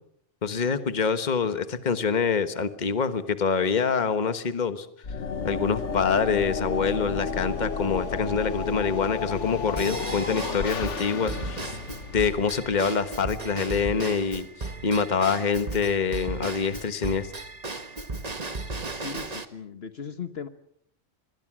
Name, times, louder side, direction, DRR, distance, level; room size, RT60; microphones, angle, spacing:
voice 1, 0.4-4.9 5.4-11.7 12.1-17.3, left 5 dB, 40° left, 11 dB, 1.4 m, -26 dB
sound 1, 5.0-13.2, left 5 dB, 75° left, 1.8 m, -32 dB
Drum kit / Drum / Bell, 9.8-19.4, right 3 dB, 35° right, 1.5 m, -36 dB
voice 2, 18.9-20.5, left 6 dB, 55° left, 10 dB, 1.4 m, -37 dB
27.0 x 22.0 x 6.2 m, 0.69 s
omnidirectional pair, 1.2 m